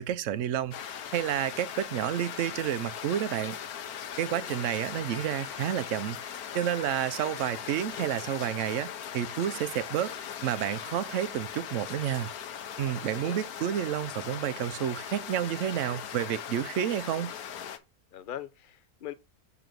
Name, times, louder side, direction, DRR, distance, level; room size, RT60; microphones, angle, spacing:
voice 1, 0.0-3.6 4.2-6.2 6.5-10.1 10.4-12.3 12.8-17.3, right 11 dB, 65° right, 0.9 m, -30 dB
sound 1, 0.7-17.8, left 8 dB, 80° left, 1.3 m, -39 dB
voice 2, 4.2-4.6 13.0-13.4 18.1-19.1, left 10 dB, 50° left, 0.6 m, -42 dB
7.6 x 3.8 x 5.1 m
omnidirectional pair, 1.6 m